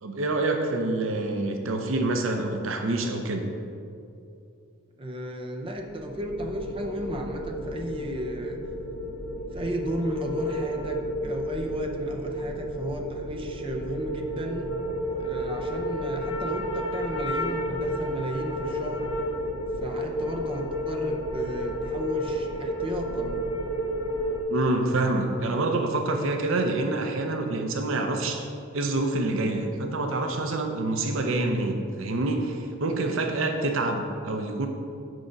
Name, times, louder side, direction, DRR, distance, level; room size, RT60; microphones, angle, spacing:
voice 1, 0.0-3.5 24.5-28.5 28.7-34.7, right 2 dB, 70° right, 4 dB, 0.6 m, -27 dB
voice 2, 5.0-8.6 9.5-14.7 15.2-19.1 19.8-23.4, right 1 dB, 25° right, 2 dB, 0.6 m, -34 dB
sound 1, 5.8-24.4, equal, 80° left, 0.8 m, -31 dB
6.4 x 4.8 x 5.2 m, 2.6 s
head